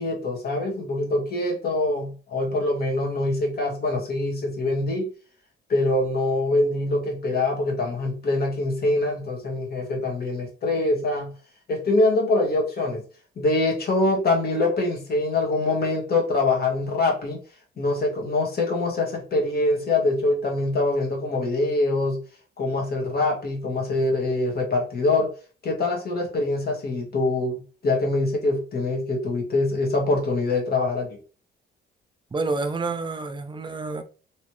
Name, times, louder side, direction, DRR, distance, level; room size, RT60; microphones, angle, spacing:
voice 1, 0.0-5.1 5.7-11.3 11.7-13.0 13.4-17.4 17.8-22.2 22.6-25.3 25.6-31.2, left 2 dB, 50° left, 1.5 m, -24 dB
voice 2, 32.3-34.0, right 3 dB, 25° right, 0.5 m, -28 dB
3.1 x 3.0 x 3.1 m
cardioid pair, 90°, 20 cm